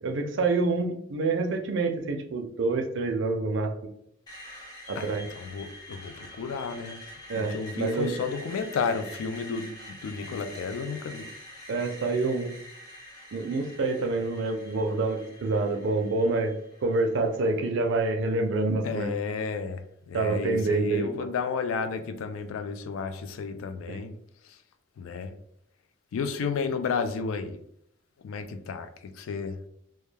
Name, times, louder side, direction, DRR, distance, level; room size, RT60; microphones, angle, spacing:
voice 1, 0.0-3.7 4.9-5.2 7.3-8.1 11.7-12.5 13.3-16.5 16.8-19.1 20.1-21.3 23.9-24.0, right 3 dB, 60° right, 5 dB, 0.4 m, -27 dB
Screech, 4.3-18.2, left 1 dB, 20° left, 0.6 m, -46 dB
voice 2, 5.0-7.0 7.4-11.3 18.8-19.8 20.1-24.1 25.0-25.3 26.1-27.6 28.2-29.6, left 5 dB, 75° left, 8 dB, 0.3 m, -32 dB
2.2 x 2.2 x 3.1 m, 0.71 s
head